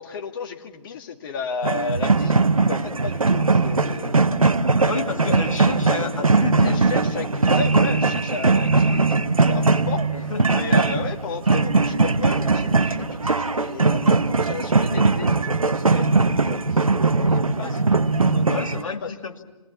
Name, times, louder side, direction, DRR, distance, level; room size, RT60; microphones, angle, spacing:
voice 1, 0.0-4.2 6.6-16.9 17.3-19.1, left 5 dB, 40° left, 3 dB, 1.9 m, -34 dB
sound 1, 1.6-18.8, right 3 dB, 80° right, 0.9 m, -20 dB
voice 2, 4.8-6.9 10.1-10.7 17.6-17.8 18.5-19.4, left 4 dB, 70° left, 3 dB, 2.3 m, -30 dB
28.0 x 21.5 x 7.3 m, 1.2 s
figure-of-eight pair, 130°, 18 cm